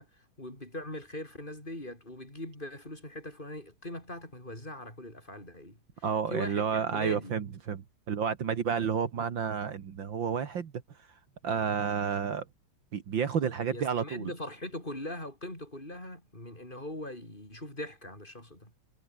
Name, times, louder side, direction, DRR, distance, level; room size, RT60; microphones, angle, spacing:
voice 1, 0.0-7.4 13.6-18.7, left 1 dB, 20° left, 8.1 m, -41 dB
voice 2, 6.0-10.7 11.0-11.1 11.4-12.5 12.9-14.3, right 7 dB, 65° right, 2.3 m, -30 dB
omnidirectional pair, 2.3 m